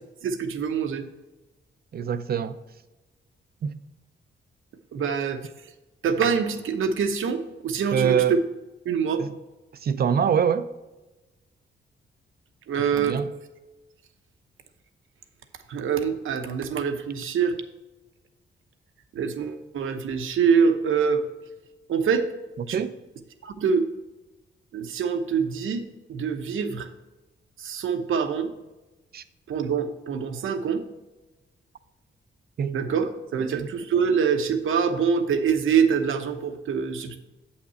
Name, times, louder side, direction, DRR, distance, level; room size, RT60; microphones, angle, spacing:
voice 1, 0.2-1.0 4.9-5.4 6.0-8.4 8.8-9.2 12.7-13.2 15.7-17.5 19.1-21.2 21.9-22.3 22.7-22.8 23.4-23.9 24.7-25.8 26.1-26.9 27.6-28.5 29.5-30.8 32.7-37.2, right 6 dB, 75° right, 0.9 m, -25 dB
voice 2, 1.9-2.5 3.6-3.7 7.9-8.4 9.2-9.3 9.8-10.7 12.9-13.3 22.7-22.9 29.1-29.2 32.6-32.8 33.5-33.7, right 7 dB, 50° right, 0.5 m, -24 dB
8.2 x 5.9 x 4.1 m
wide cardioid pair, 145°, 21 cm